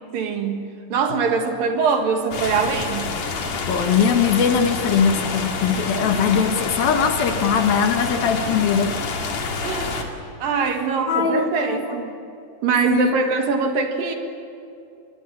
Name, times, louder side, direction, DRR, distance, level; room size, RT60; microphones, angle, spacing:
voice 1, 0.0-3.1 9.6-10.1 10.4-12.1 12.6-14.2, right 5 dB, 60° right, 4 dB, 3.1 m, -23 dB
sound 1, 2.3-10.0, left 4 dB, 45° left, 3.0 m, -28 dB
voice 2, 3.7-8.9 11.1-12.0 12.9-13.2, left 6 dB, 65° left, 5 dB, 2.9 m, -20 dB
25.5 x 21.0 x 10.0 m, 2.6 s
omnidirectional pair, 4.9 m